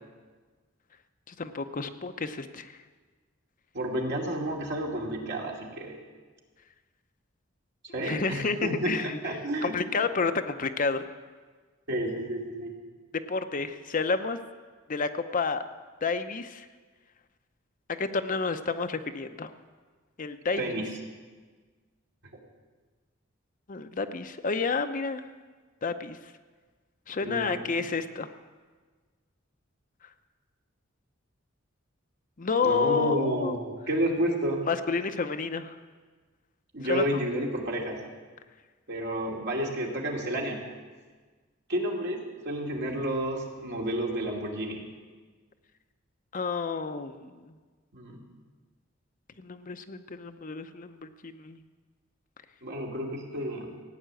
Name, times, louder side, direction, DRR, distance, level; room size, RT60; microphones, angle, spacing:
voice 1, 1.3-2.7 8.0-9.2 9.6-11.1 13.3-14.4 14.9-15.6 16.0-16.7 18.0-19.5 20.2-20.6 23.7-25.2 25.8-26.2 27.1-28.3 32.4-33.6 34.7-35.8 36.9-37.0 46.3-47.5 49.4-51.6, left 4 dB, 40° left, 8 dB, 0.7 m, -30 dB
voice 2, 3.7-6.0 7.9-8.9 9.2-9.8 11.9-12.7 20.6-20.9 27.2-27.6 32.6-34.6 36.7-38.0 38.9-40.6 41.7-44.8 47.9-48.2 52.6-53.7, right 1 dB, 60° right, -1 dB, 2.7 m, -31 dB
16.0 x 9.3 x 7.7 m, 1.4 s
head